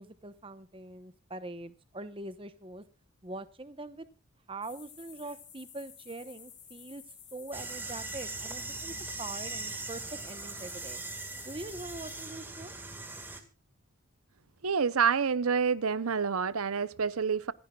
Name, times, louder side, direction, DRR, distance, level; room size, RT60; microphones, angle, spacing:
voice 1, 0.0-2.8 3.2-4.1 4.5-7.0 7.3-11.0 11.4-12.7, right 2 dB, 25° right, 0.9 m, -43 dB
sound 1, 4.6-12.3, left 7 dB, 55° left, 5.8 m, -52 dB
sound 2, 7.5-13.4, right 3 dB, 10° right, 1.7 m, -40 dB
voice 2, 14.6-17.5, right 6 dB, 90° right, 0.7 m, -28 dB
26.5 x 10.5 x 2.3 m
head